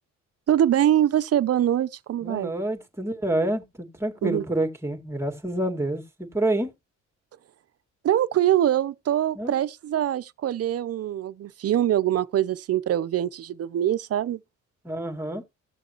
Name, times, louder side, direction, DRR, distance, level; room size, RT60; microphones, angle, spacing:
voice 1, 0.5-2.5 4.2-4.4 8.0-14.4, right 11 dB, 55° right, 0.7 m, -23 dB
voice 2, 2.2-6.7 9.4-9.6 14.8-15.4, right 1 dB, 10° right, 2.2 m, -28 dB
16.0 x 6.6 x 3.1 m
cardioid pair, 90°, 30 cm